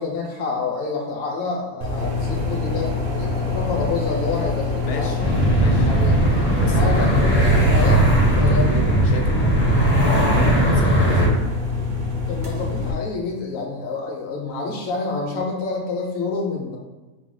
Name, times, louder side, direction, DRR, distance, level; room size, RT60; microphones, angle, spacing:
voice 1, 0.0-5.3 5.8-6.2 6.5-8.0 8.4-8.7 12.3-16.8, left 4 dB, 50° left, -1 dB, 1.1 m, -28 dB
sound 1, 1.8-12.9, left 4 dB, 50° right, 0.6 m, -25 dB
sound 2, 2.0-7.7, equal, 85° right, 1.8 m, -33 dB
voice 2, 4.8-5.2 5.6-5.9 6.6-7.1 8.3-11.4, left 4 dB, 80° left, 1 dB, 1.1 m, -32 dB
sound 3, 5.2-11.3, right 1 dB, 20° left, 0.7 m, -18 dB
5.4 x 2.4 x 3.8 m, 1.2 s
omnidirectional pair, 1.6 m